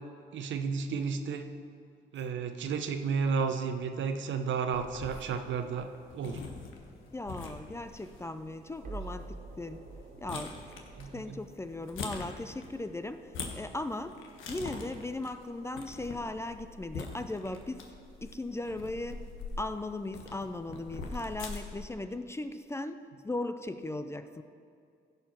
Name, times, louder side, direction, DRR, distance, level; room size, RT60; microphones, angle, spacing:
voice 1, 0.3-1.5 2.1-6.4 11.0-11.4, right 5 dB, 70° right, 7 dB, 0.9 m, -32 dB
sound 1, 4.7-21.9, left 4 dB, 85° left, 1.3 m, -45 dB
sound 2, 7.0-18.0, right 3 dB, 45° right, 1.5 m, -51 dB
voice 2, 7.1-9.9 10.2-10.6 11.1-14.2 14.5-17.9 18.2-19.3 19.6-24.4, left 2 dB, 15° left, 10 dB, 0.5 m, -38 dB
15.5 x 5.6 x 5.9 m, 2.4 s
cardioid pair, 90°, 20 cm